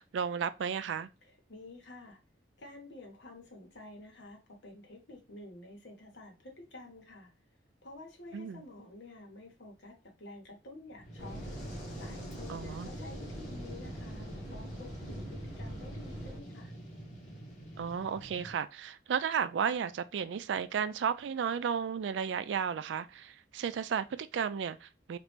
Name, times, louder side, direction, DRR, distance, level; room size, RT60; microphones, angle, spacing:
voice 1, 0.0-1.1 8.3-8.6 12.5-12.9 17.8-25.2, right 7 dB, 80° right, 0.3 m, -33 dB
voice 2, 1.2-2.2 2.6-7.3 7.8-11.4 12.0-16.7, left 2 dB, 75° left, 1.1 m, -50 dB
Fire, 10.9-18.6, right 1 dB, 40° left, 1.1 m, -46 dB
sound 1, 11.2-16.4, equal, 15° right, 0.9 m, -44 dB
3.1 x 2.5 x 3.2 m
head